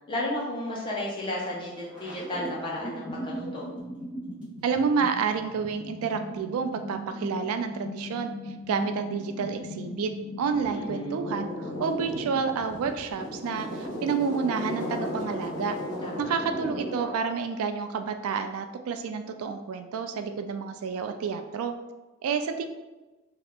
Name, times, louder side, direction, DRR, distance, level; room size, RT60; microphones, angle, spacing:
voice 1, 0.1-3.7 10.8-11.2 16.0-16.3, left 1 dB, 20° left, -4 dB, 0.6 m, -33 dB
sound 1, 1.4-1.5 1.7-17.2, equal, 5° right, 1.0 m, -36 dB
voice 2, 4.6-10.1 10.4-15.8 16.2-21.7 22.2-22.7, right 5 dB, 75° right, 8 dB, 0.3 m, -29 dB
2.8 x 2.4 x 3.4 m, 1.1 s
head